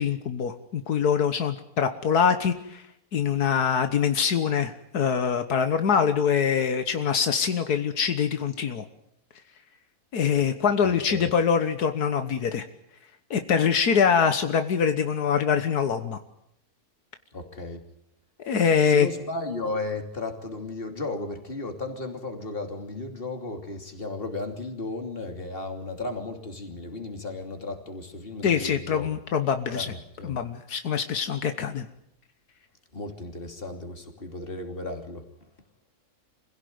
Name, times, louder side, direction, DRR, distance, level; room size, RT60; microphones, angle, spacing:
voice 1, 0.0-2.8 3.1-8.8 10.1-12.7 13.3-16.2 18.5-19.1 28.4-29.9 30.2-31.9, left 7 dB, 80° left, 8 dB, 1.8 m, -24 dB
voice 2, 17.3-17.8 18.9-29.2 29.7-30.4 32.9-35.3, left 2 dB, 35° left, 5 dB, 3.0 m, -35 dB
25.5 x 16.5 x 9.4 m, 0.79 s
omnidirectional pair, 1.6 m